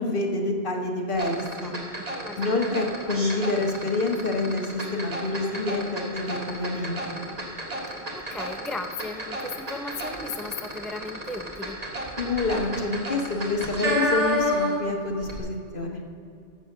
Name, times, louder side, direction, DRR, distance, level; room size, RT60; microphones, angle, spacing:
voice 1, 0.0-1.7 2.4-7.1 12.2-16.0, left 2 dB, 50° left, 1 dB, 1.7 m, -27 dB
sound 1, 1.1-14.9 15.2-15.4, equal, 35° right, 1.9 m, -31 dB
voice 2, 2.1-2.8 7.9-11.8, left 3 dB, ahead, 6 dB, 0.4 m, -36 dB
13.5 x 7.6 x 6.7 m, 2.5 s
omnidirectional pair, 1.1 m